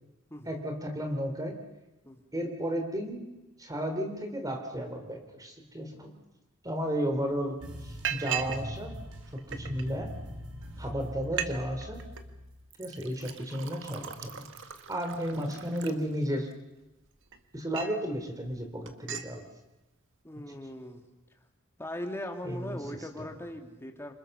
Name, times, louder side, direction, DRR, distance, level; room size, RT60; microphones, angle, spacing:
voice 1, 0.5-1.6 2.3-3.2 3.6-6.1 6.6-7.6 7.8-8.9 9.3-10.1 10.8-12.0 12.8-14.4 14.9-16.5 17.5-19.5 22.4-22.8 23.2-23.3, equal, 15° right, 4 dB, 3.7 m, -33 dB
Liquid, 6.9-7.0 7.3-7.6 8.0-8.6 8.9-9.8 10.5-10.6 10.9-11.0 11.2-11.5 11.8-12.2 12.7-16.5 17.0-18.0 18.4-18.6 18.9-19.3, right 9 dB, 60° right, 1.7 m, -38 dB
sound 1, 7.6-12.6, equal, 90° right, 5.4 m, -42 dB
voice 2, 20.2-21.1 21.8-24.1, left 1 dB, 10° left, 4 dB, 2.4 m, -39 dB
28.0 x 26.0 x 6.9 m, 1.0 s
head